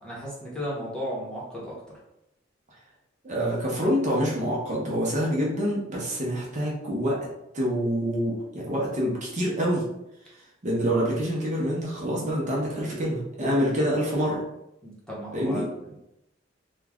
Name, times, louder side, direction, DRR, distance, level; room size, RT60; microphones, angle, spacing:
voice 1, 0.0-2.0 14.8-15.9, equal, 5° left, -7 dB, 0.9 m, -35 dB
voice 2, 3.2-7.2 7.5-9.8 10.6-14.4 15.3-15.6, equal, 40° right, -4 dB, 0.8 m, -26 dB
3.0 x 2.3 x 3.5 m, 0.86 s
head